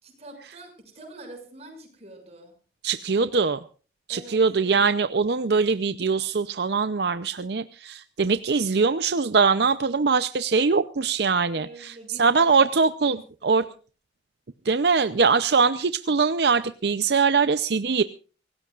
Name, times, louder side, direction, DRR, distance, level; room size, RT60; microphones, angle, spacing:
voice 1, 0.0-2.5 4.1-4.4 11.5-12.6 13.0-13.7, right 1 dB, 40° right, 3 dB, 6.7 m, -45 dB
voice 2, 2.8-3.6 4.1-13.6 14.7-18.0, right 5 dB, 70° right, 12 dB, 0.6 m, -22 dB
25.0 x 18.0 x 2.4 m, 0.38 s
head